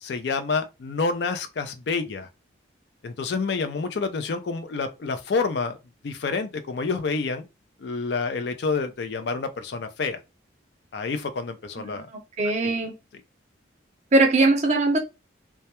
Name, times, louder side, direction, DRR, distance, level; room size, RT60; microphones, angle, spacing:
voice 1, 0.0-2.3 3.0-5.8 6.0-7.4 7.8-10.2 10.9-12.1, left 4 dB, 60° left, 0.4 m, -28 dB
voice 2, 11.8-12.9 14.1-15.0, right 2 dB, 35° right, 0.6 m, -21 dB
2.2 x 2.1 x 2.8 m
head